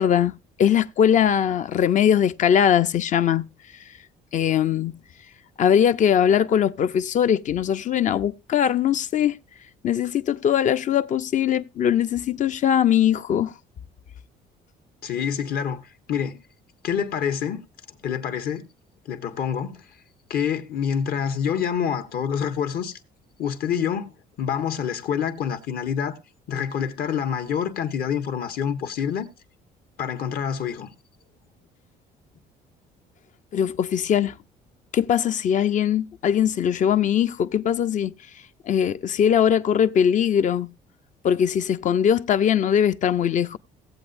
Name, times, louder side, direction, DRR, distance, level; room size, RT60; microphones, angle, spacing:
voice 1, 0.0-3.5 4.3-5.0 5.6-9.4 9.8-13.5 33.5-34.3 34.9-38.1 38.7-40.7 41.2-43.6, left 9 dB, 50° left, 0.6 m, -21 dB
voice 2, 15.0-15.8 16.1-16.4 16.8-17.6 18.0-18.6 19.0-19.8 20.3-23.0 23.4-24.1 24.4-26.2 26.5-29.3 30.0-30.9, left 8 dB, 65° left, 1.4 m, -26 dB
17.0 x 7.9 x 2.6 m
cardioid pair, 110°, 17 cm